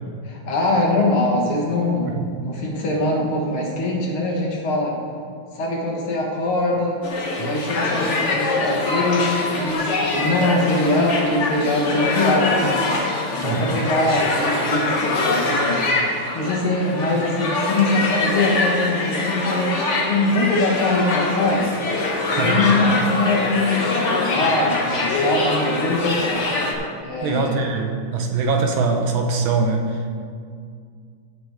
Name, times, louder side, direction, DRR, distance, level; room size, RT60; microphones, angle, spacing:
voice 1, 0.2-2.1 2.4-5.0 5.5-7.0 7.4-12.9 13.3-19.7 20.1-21.7 22.3-26.4 27.0-27.6, left 2 dB, 80° left, -1 dB, 2.4 m, -22 dB
voice 2, 2.0-2.4 7.4-7.5 13.4-13.7 22.4-22.7 27.2-30.0, right 4 dB, 70° right, 3 dB, 1.6 m, -23 dB
sound 1, 7.0-26.7, left 2 dB, 45° left, 1.0 m, -23 dB
16.0 x 6.0 x 3.6 m, 2.2 s
omnidirectional pair, 2.3 m